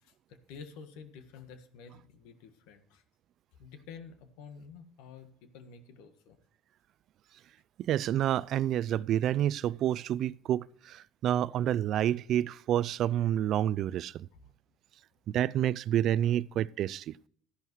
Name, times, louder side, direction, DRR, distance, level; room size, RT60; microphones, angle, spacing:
voice 1, 0.0-3.0 3.6-6.4 14.3-14.5, left 6 dB, 75° left, 1.5 m, -50 dB
voice 2, 7.8-14.3 15.3-17.2, right 11 dB, 60° right, 0.3 m, -29 dB
13.0 x 10.5 x 3.1 m
supercardioid pair, 75°, 0 cm